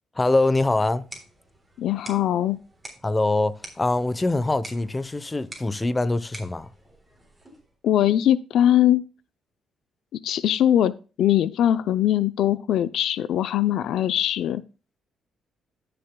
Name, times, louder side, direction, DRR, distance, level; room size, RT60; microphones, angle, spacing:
voice 1, 0.1-1.1 3.0-6.7, left 2 dB, 20° left, 0.8 m, -23 dB
sound 1, 0.8-7.8, right 1 dB, 5° right, 3.6 m, -47 dB
voice 2, 1.8-2.6 7.8-9.0 10.2-10.9 11.2-14.6, left 11 dB, 75° left, 0.4 m, -21 dB
15.5 x 6.8 x 2.2 m
cardioid pair, 90°, 0 cm